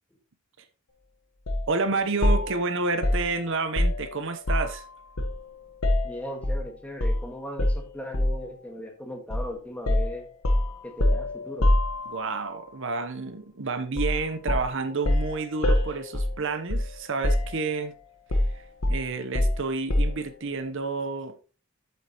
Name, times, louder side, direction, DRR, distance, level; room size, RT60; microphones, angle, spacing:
sound 1, 1.5-1.7 2.2-4.8 5.2-6.6 7.0-7.2 7.6-8.5 9.3-9.5 9.9-12.4 14.0-14.2 14.5-17.0 17.2-17.9 18.3-20.3, left 1 dB, 85° left, 1.3 m, -25 dB
voice 1, 1.7-4.9 12.1-17.9 18.5-21.3, right 4 dB, 60° right, 0.9 m, -30 dB
voice 2, 6.0-10.3 10.8-11.7, equal, 5° left, 1.7 m, -38 dB
8.1 x 7.9 x 3.0 m
head